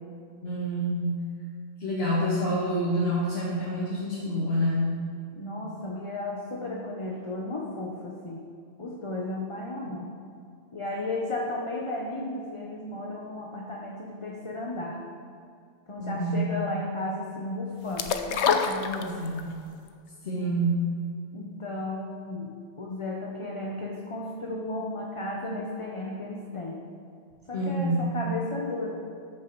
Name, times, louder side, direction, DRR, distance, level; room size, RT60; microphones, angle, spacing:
voice 1, 0.4-1.2 1.8-5.0 16.0-16.5 18.6-19.5 20.2-20.8 27.5-28.2, equal, 65° left, -8 dB, 2.1 m, -27 dB
voice 2, 5.3-8.4 8.8-10.1 10.7-15.0 15.9-18.7 19.1-19.2 20.3-20.6 21.3-26.8 27.5-28.9, left 2 dB, 30° left, -2 dB, 1.0 m, -34 dB
sound 1, 18.0-19.5 19.9-20.0, left 6 dB, 90° left, 1.0 m, -25 dB
13.0 x 6.5 x 4.7 m, 2.3 s
omnidirectional pair, 1.1 m